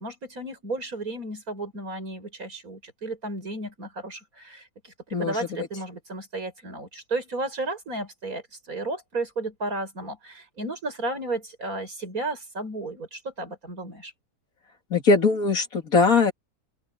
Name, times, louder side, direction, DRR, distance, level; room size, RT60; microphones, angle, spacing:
voice 1, 0.0-14.1, right 2 dB, 70° right, 6.0 m, -33 dB
voice 2, 5.1-5.7 14.9-16.3, left 4 dB, 70° left, 2.8 m, -21 dB
open air
omnidirectional pair, 1.6 m